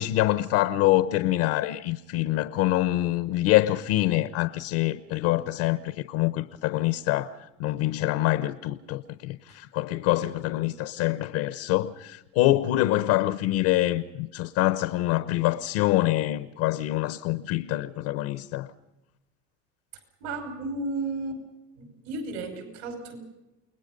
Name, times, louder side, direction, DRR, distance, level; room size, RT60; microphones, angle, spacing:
voice 1, 0.0-18.7, left 16 dB, 70° left, 1.1 m, -25 dB
voice 2, 20.2-21.4 21.8-23.2, right 2 dB, 75° right, 6.0 m, -33 dB
29.5 x 20.5 x 5.4 m
supercardioid pair, 120°, 32 cm